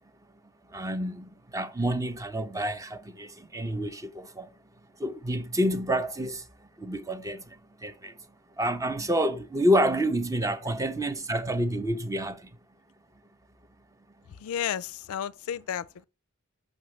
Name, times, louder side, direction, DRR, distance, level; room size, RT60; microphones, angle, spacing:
voice 1, 0.7-4.5 5.0-6.4 6.8-7.4 7.8-8.1 8.6-12.4, equal, 15° right, 0.5 m, -28 dB
voice 2, 14.4-16.0, left 9 dB, 65° left, 0.3 m, -32 dB
6.2 x 6.1 x 3.1 m
head